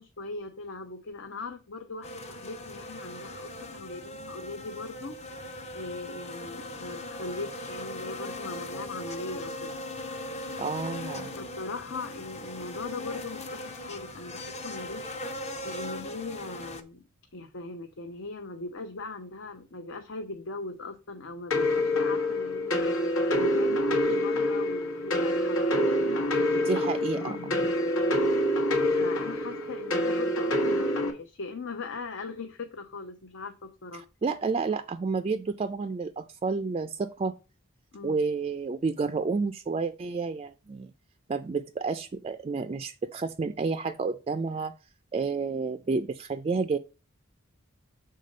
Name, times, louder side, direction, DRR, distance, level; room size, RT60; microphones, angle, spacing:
voice 1, 0.0-5.2 5.7-9.8 11.4-15.1 15.6-17.0 17.3-26.8 27.2-27.7 29.0-34.0 37.9-38.2, left 3 dB, 65° left, 0.8 m, -39 dB
sound 1, 2.0-16.8, left 1 dB, 30° left, 0.7 m, -39 dB
voice 2, 10.6-11.3 26.6-27.5 33.9-37.3 38.0-40.9 41.3-44.7 45.1-46.8, right 4 dB, 30° right, 0.3 m, -30 dB
sound 2, 21.5-31.1, left 1 dB, 80° left, 1.4 m, -26 dB
6.7 x 3.8 x 5.2 m
head